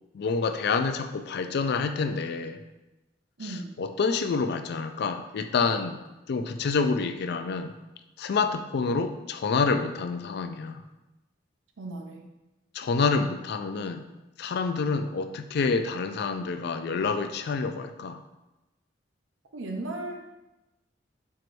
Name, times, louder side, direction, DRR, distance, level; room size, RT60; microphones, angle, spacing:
voice 1, 0.1-2.6 3.8-6.0 6.3-7.7 8.2-10.8 12.7-14.0 14.4-18.2, left 4 dB, 55° left, 8 dB, 0.4 m, -27 dB
voice 2, 3.4-3.7 11.8-12.3 19.5-20.2, right 2 dB, 85° right, 2 dB, 0.6 m, -36 dB
4.6 x 2.6 x 4.5 m, 1.0 s
head